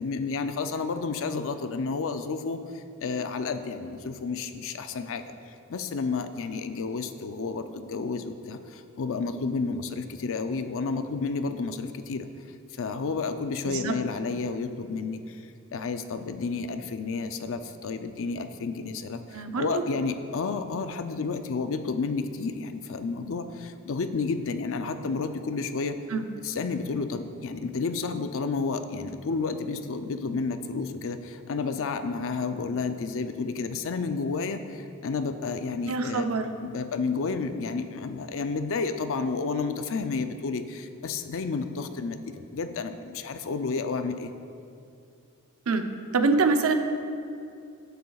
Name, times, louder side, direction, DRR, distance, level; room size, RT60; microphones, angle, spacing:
voice 1, 0.0-12.3 12.8-15.4 15.7-26.0 26.4-36.3 36.6-44.3, left 4 dB, 65° left, 9 dB, 0.5 m, -31 dB
voice 2, 13.6-14.0 19.3-19.8 26.1-26.2 35.9-36.5 45.7-45.9 46.1-46.7, right 4 dB, 65° right, 6 dB, 0.7 m, -25 dB
16.5 x 6.8 x 2.4 m, 2.5 s
head